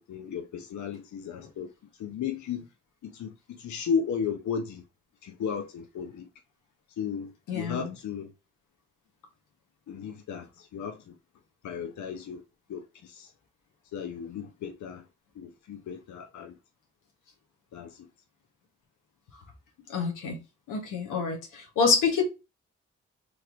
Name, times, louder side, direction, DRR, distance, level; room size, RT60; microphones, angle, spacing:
voice 1, 0.0-1.7 2.0-2.7 3.0-4.8 5.2-6.3 7.0-8.3 9.9-11.1 11.6-12.4 12.7-13.3 13.9-15.0 15.4-16.6 17.7-18.1, left 7 dB, 65° left, 0.6 m, -35 dB
voice 2, 7.5-7.9 19.9-20.4 20.7-22.2, left 5 dB, 85° left, 1.0 m, -27 dB
3.1 x 2.9 x 2.4 m
supercardioid pair, 40°, 32 cm